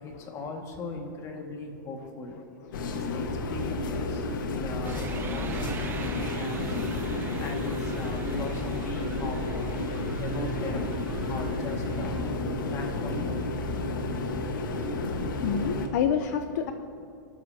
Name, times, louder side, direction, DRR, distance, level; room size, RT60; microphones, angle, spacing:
voice 1, 0.0-2.4 2.9-5.0 5.3-6.8 7.4-9.8 10.2-12.3 12.7-13.5, left 3 dB, 30° left, 2 dB, 1.9 m, -39 dB
sound 1, 2.7-15.9, left 2 dB, 85° left, 1.5 m, -31 dB
sound 2, 4.8-12.2, right 4 dB, 20° right, 0.7 m, -39 dB
voice 2, 15.4-16.7, left 8 dB, 60° left, 7 dB, 0.7 m, -28 dB
28.5 x 12.5 x 2.9 m, 2.6 s
supercardioid pair, 150°, 11 cm